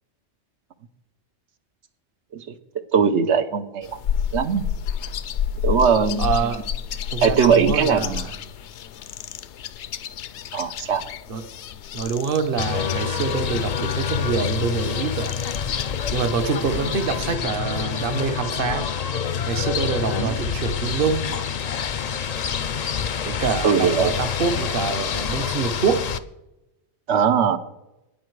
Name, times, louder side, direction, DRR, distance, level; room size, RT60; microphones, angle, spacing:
voice 1, 2.9-3.9 4.3-4.6 5.6-6.3 7.2-8.2 10.5-11.0 20.1-20.3 23.6-24.2 27.1-27.6, right 6 dB, 80° right, 9 dB, 1.1 m, -20 dB
sound 1, 3.8-17.3, left 8 dB, 80° left, 0.9 m, -31 dB
voice 2, 6.2-6.6 7.1-8.3 11.3-11.4 11.9-15.3 16.1-18.9 19.5-21.2 23.2-26.0, right 5 dB, 55° right, 9 dB, 1.1 m, -25 dB
sound 2, 12.6-26.2, left 7 dB, 50° left, 0.5 m, -27 dB
12.5 x 9.6 x 4.7 m, 0.91 s
omnidirectional pair, 1.2 m